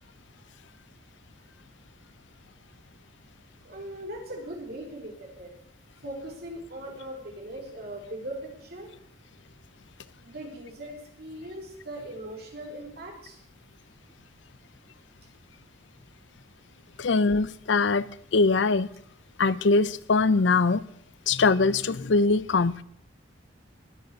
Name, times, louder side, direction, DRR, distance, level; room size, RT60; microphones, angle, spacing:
voice 1, 3.6-5.5 6.0-8.9 10.2-13.4, right 1 dB, 55° right, 0 dB, 3.8 m, -39 dB
voice 2, 17.0-18.1 18.3-18.9 19.4-20.8 21.3-22.8, left 3 dB, 70° left, 18 dB, 0.6 m, -22 dB
19.5 x 6.7 x 6.7 m, 0.70 s
head